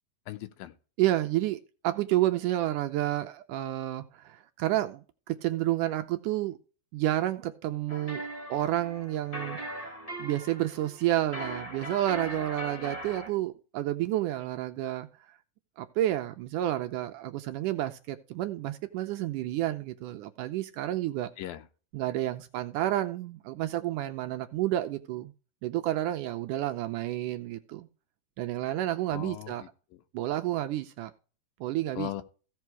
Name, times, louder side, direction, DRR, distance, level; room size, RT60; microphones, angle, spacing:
voice 1, 0.3-0.7 21.4-21.7 29.1-30.0 32.0-32.2, left 13 dB, 85° left, 2.6 m, -38 dB
voice 2, 1.0-6.6 6.9-15.1 15.8-21.3 21.9-25.3 25.6-27.9 28.4-29.6 30.1-31.1 31.6-32.1, right 14 dB, 75° right, 2.1 m, -30 dB
sound 1, 7.9-13.3, right 1 dB, 15° left, 1.1 m, -39 dB
15.5 x 5.5 x 4.6 m
omnidirectional pair, 4.0 m